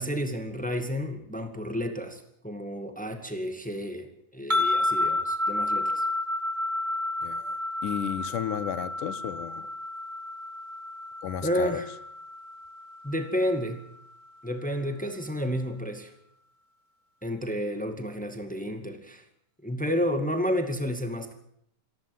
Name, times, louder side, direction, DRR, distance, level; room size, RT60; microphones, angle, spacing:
voice 1, 0.0-6.0 11.4-11.9 13.0-13.8 14.4-16.1 17.2-19.2 19.6-21.3, equal, 5° left, 6 dB, 0.8 m, -31 dB
sound 1, 4.5-13.8, left 2 dB, 20° right, 1.1 m, -31 dB
voice 2, 7.2-7.6 7.8-9.7 11.2-11.8, left 10 dB, 70° left, 14 dB, 2.4 m, -33 dB
27.0 x 12.0 x 9.4 m, 0.76 s
omnidirectional pair, 4.2 m